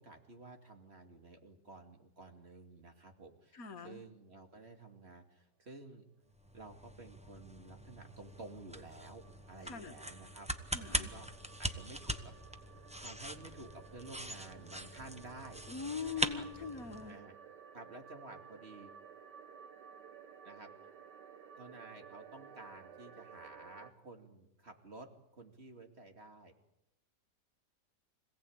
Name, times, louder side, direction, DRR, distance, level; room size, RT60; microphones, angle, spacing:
voice 1, 0.0-6.1 6.5-10.5 10.8-11.3 11.6-12.3 13.0-15.6 16.1-16.5 17.1-17.4 17.7-18.9 20.4-20.7 21.6-26.5, right 2 dB, 35° right, 4 dB, 2.7 m, -52 dB
voice 2, 3.5-4.0 9.7-9.9 10.7-11.1 15.7-17.2, left 5 dB, 55° left, 7 dB, 1.9 m, -42 dB
sound 1, 6.3-17.1, equal, 5° right, 0.8 m, -42 dB
sound 2, 7.1-23.9, right 7 dB, 70° right, 1.7 m, -56 dB
25.5 x 17.0 x 8.7 m, 0.89 s
omnidirectional pair, 1.9 m